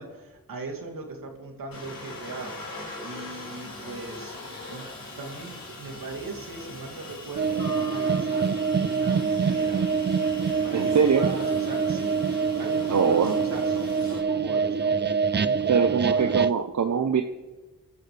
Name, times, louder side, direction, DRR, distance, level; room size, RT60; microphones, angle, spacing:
voice 1, 0.0-2.8 3.0-4.3 4.7-4.9 5.1-8.6 8.8-9.9 10.6-16.5, right 3 dB, 75° right, 1 dB, 3.0 m, -39 dB
Aircraft, 1.7-14.2, left 2 dB, 80° left, 5.5 m, -41 dB
sound 1, 7.4-16.5, right 5 dB, 30° right, 0.5 m, -25 dB
voice 2, 10.7-11.3 12.9-13.4 15.7-17.2, right 6 dB, 55° right, 6 dB, 0.9 m, -22 dB
25.0 x 12.5 x 3.4 m, 1.2 s
cardioid pair, 60°, 34 cm